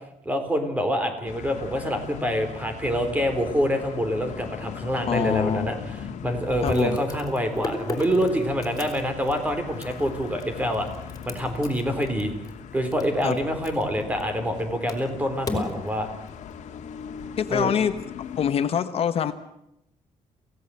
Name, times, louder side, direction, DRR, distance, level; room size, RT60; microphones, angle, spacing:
voice 1, 0.2-10.9 11.3-12.3 12.7-16.1 17.5-17.8, equal, 10° right, 7 dB, 4.0 m, -26 dB
sound 1, 1.3-18.5, left 7 dB, 75° left, 2.0 m, -40 dB
voice 2, 5.1-5.7 6.6-7.0 13.2-13.4 17.4-18.0 18.4-19.3, left 8 dB, 55° left, 10 dB, 1.1 m, -24 dB
sound 2, 5.1-5.2 5.5-5.6 6.4-14.6 14.9-17.0, left 3 dB, 30° left, 4.4 m, -36 dB
28.0 x 17.0 x 7.8 m, 0.82 s
cardioid pair, 155°, 12 cm